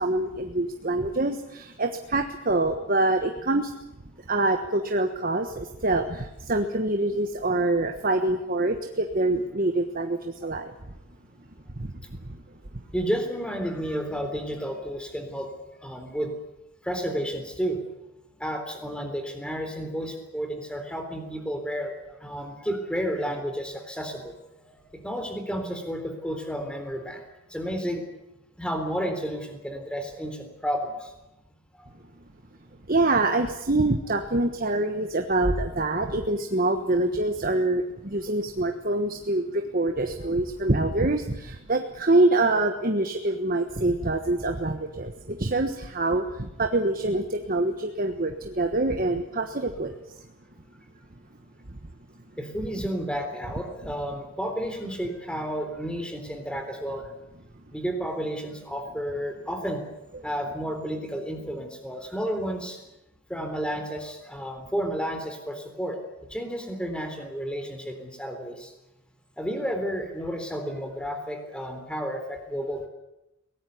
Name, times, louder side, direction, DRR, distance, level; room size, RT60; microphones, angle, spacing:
voice 1, 0.0-3.7 4.3-10.7 11.8-11.9 32.9-49.9, right 2 dB, 40° right, 6 dB, 1.3 m, -25 dB
voice 2, 12.9-16.3 16.8-17.9 18.4-27.2 27.5-28.0 28.6-31.1 31.7-31.9 52.4-57.1 57.7-59.8 60.2-62.8 63.3-66.0 66.3-68.7 69.4-72.9, equal, 5° left, 5 dB, 3.7 m, -31 dB
22.5 x 18.0 x 9.4 m, 0.92 s
head